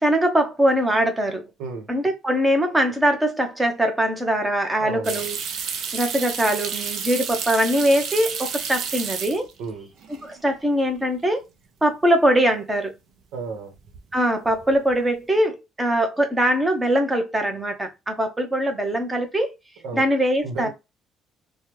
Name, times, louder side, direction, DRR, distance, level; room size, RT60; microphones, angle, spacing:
voice 1, 0.0-1.5 1.9-5.4 5.9-9.5 10.2-11.4 11.8-12.9 14.1-19.5 19.9-20.7, right 1 dB, 15° right, 0.9 m, -22 dB
voice 2, 4.8-5.2 9.6-9.9 13.3-13.7 19.8-20.0 20.4-20.7, right 4 dB, 80° right, 1.0 m, -33 dB
sound 1, 5.0-9.7 10.0-10.6 11.0-11.1 13.7-14.1 14.4-15.0, right 6 dB, 65° right, 0.6 m, -31 dB
3.4 x 2.2 x 3.0 m
cardioid pair, 105°, 0 cm